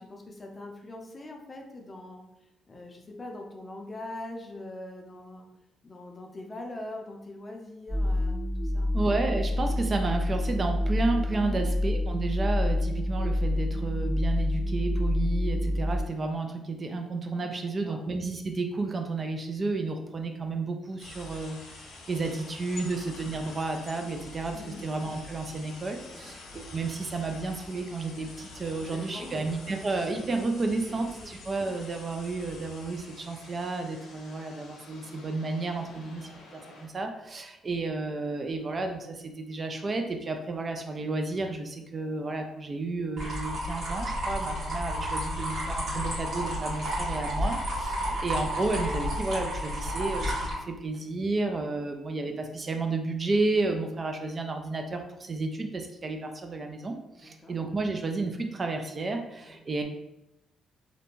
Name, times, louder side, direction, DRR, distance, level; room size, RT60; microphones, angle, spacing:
voice 1, 0.0-2.2 2.7-5.5 5.8-8.9 11.4-11.7 17.6-18.0 24.5-24.8 26.1-26.3 28.9-29.7 30.9-31.3 35.8-36.0 47.9-48.2 57.2-57.5 59.4-59.6, left 2 dB, 30° left, 1 dB, 0.5 m, -43 dB
sound 1, 7.9-16.0, left 1 dB, 10° right, 1.1 m, -27 dB
voice 2, 8.9-59.8, right 3 dB, 35° right, 4 dB, 0.3 m, -32 dB
sound 2, 21.0-36.9, left 2 dB, 90° left, 0.6 m, -47 dB
sound 3, 43.2-50.5, equal, 60° right, 1.2 m, -31 dB
2.5 x 2.1 x 3.0 m, 0.86 s
cardioid pair, 90°, 0 cm